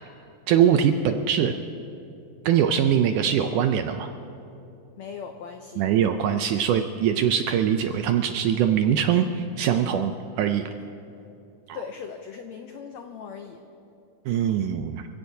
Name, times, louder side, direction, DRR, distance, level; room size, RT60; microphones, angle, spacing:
voice 1, 0.5-1.5 2.5-4.1 5.8-10.7 11.7-11.8 14.3-15.1, right 9 dB, 80° right, 7 dB, 1.9 m, -22 dB
voice 2, 5.0-5.9 11.7-13.6, left 6 dB, 85° left, 5 dB, 1.5 m, -39 dB
28.5 x 17.0 x 2.8 m, 2.8 s
omnidirectional pair, 4.1 m